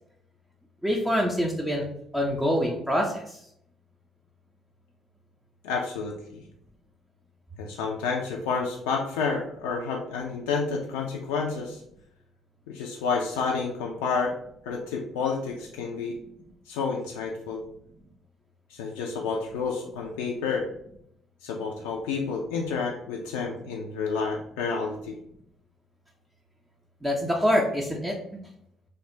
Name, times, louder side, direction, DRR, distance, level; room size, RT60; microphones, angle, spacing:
voice 1, 0.8-1.8 2.1-3.5 27.0-28.4, equal, 10° right, -1 dB, 0.7 m, -25 dB
voice 2, 5.6-6.4 7.6-11.8 12.7-14.3 14.7-16.2 16.7-17.6 18.7-20.7 21.4-25.1, left 5 dB, 75° left, 0 dB, 0.4 m, -30 dB
3.3 x 2.3 x 3.8 m, 0.73 s
hypercardioid pair, 50°, 0 cm